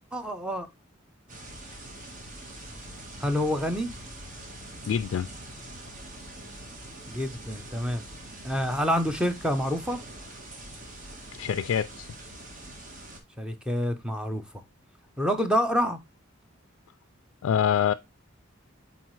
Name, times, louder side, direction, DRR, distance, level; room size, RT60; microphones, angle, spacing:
voice 1, 0.1-0.7 3.2-3.9 7.1-8.0 8.4-10.0 13.4-14.4 15.2-16.0, equal, 5° right, 0.7 m, -27 dB
sound 1, 1.3-13.2, right 1 dB, 40° right, 1.5 m, -44 dB
voice 2, 4.9-5.3 11.3-12.1 17.4-17.9, left 8 dB, 80° left, 0.3 m, -25 dB
8.4 x 4.1 x 3.1 m
head